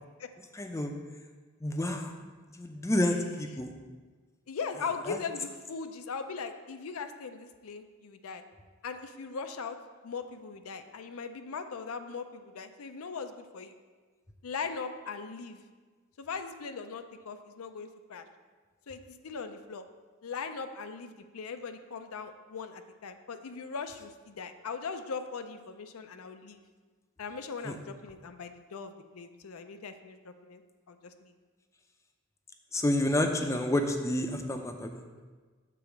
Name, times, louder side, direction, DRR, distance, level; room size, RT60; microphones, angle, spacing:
voice 1, 0.5-0.9 1.6-2.1 2.5-3.7 5.1-5.2 27.6-27.7 32.7-35.0, left 1 dB, 15° left, 5 dB, 0.5 m, -29 dB
voice 2, 4.5-8.4 8.8-9.8 10.0-13.7 14.4-15.6 16.2-18.2 18.9-19.8 20.2-26.6 27.2-30.6 30.9-31.3, left 5 dB, 90° left, 8 dB, 0.5 m, -39 dB
6.9 x 4.1 x 5.9 m, 1.4 s
head